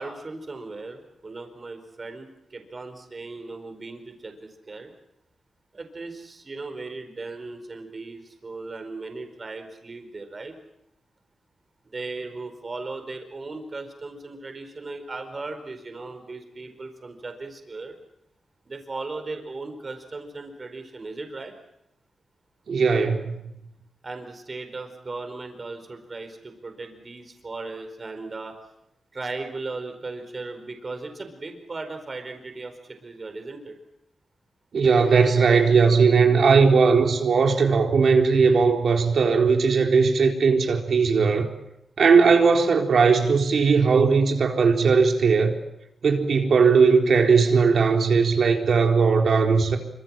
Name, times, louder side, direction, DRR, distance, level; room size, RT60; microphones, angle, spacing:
voice 1, 0.0-4.9 5.7-10.6 11.8-18.0 18.7-21.5 24.0-28.5 29.1-32.7 33.0-33.7, right 3 dB, 40° right, 4.6 m, -37 dB
voice 2, 22.7-23.3 34.7-41.5 42.0-45.6 46.0-49.8, right 5 dB, 65° right, 4.1 m, -18 dB
26.0 x 25.0 x 7.5 m
cardioid pair, 95°, 0 cm